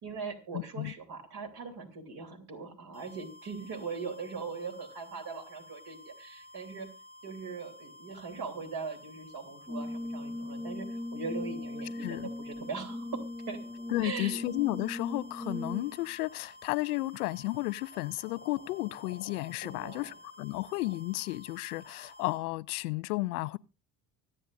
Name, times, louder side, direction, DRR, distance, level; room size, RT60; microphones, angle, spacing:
voice 1, 0.0-6.9 7.2-13.6 14.0-14.4 19.6-20.1, right 4 dB, 50° right, 3.2 m, -40 dB
voice 2, 0.5-0.9 12.0-12.3 13.9-23.6, left 20 dB, 75° left, 0.6 m, -33 dB
sound 1, 2.9-22.4, left 1 dB, 75° right, 5.6 m, -53 dB
Brass instrument, 9.7-16.1, left 1 dB, ahead, 0.5 m, -39 dB
sound 2, 16.2-16.6 17.9-21.0, left 7 dB, 25° left, 1.2 m, -54 dB
24.5 x 8.8 x 2.5 m
figure-of-eight pair, 55°, 46 cm